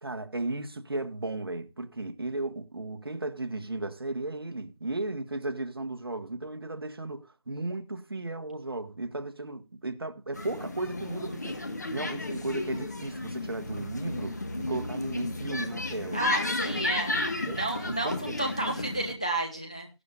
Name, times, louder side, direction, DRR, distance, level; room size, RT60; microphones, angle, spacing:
voice 1, 0.0-11.6 11.9-16.2 16.6-17.0 17.5-18.3 18.6-18.8, right 2 dB, 50° right, 1.4 m, -35 dB
sound 1, 10.3-19.1, left 2 dB, 35° left, 1.4 m, -33 dB
voice 2, 16.1-19.9, right 2 dB, 15° left, 0.6 m, -32 dB
15.5 x 11.5 x 2.5 m
figure-of-eight pair, 175°, 15 cm